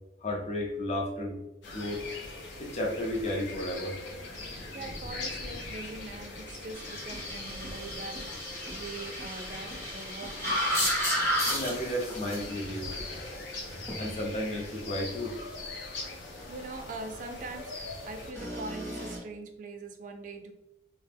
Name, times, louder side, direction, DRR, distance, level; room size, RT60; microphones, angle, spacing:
voice 1, 0.2-1.4 1.7-2.1 2.6-4.0 11.5-12.9 14.0-15.4, left 1 dB, 35° left, 0 dB, 0.4 m, -33 dB
sound 1, 1.6-18.3, left 2 dB, 85° left, 0.6 m, -41 dB
voice 2, 4.5-10.9 16.2-20.5, right 3 dB, 45° right, 6 dB, 0.3 m, -43 dB
sound 2, 6.7-14.1 18.3-19.2, equal, 15° left, 0.8 m, -33 dB
2.2 x 2.0 x 3.3 m, 0.94 s
head